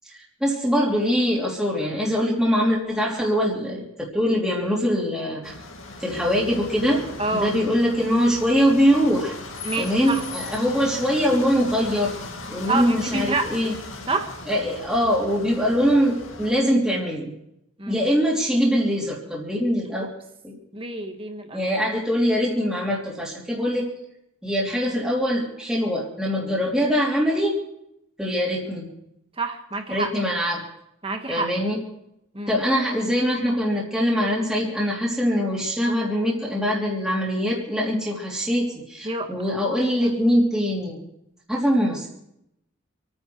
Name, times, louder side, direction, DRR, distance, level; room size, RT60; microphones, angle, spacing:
voice 1, 0.1-5.5 6.0-9.3 9.8-12.1 12.5-13.7 14.5-17.3 17.9-20.1 20.4-20.6 21.5-23.9 24.4-27.6 28.2-28.9 29.9-30.6 31.3-31.8 32.5-41.0 41.5-42.1, equal, 5° right, -5 dB, 3.2 m, -23 dB
sound 1, 5.4-16.5, left 3 dB, 80° left, 2.3 m, -38 dB
voice 2, 7.2-7.5 9.6-10.2 12.7-13.6 14.1-14.3 17.8-18.0 20.0-20.1 20.7-21.7 29.4-30.1 31.0-31.5 32.3-32.6 39.0-39.3 40.0-40.1, right 3 dB, 25° right, 6 dB, 1.6 m, -27 dB
27.0 x 9.8 x 4.7 m, 0.80 s
head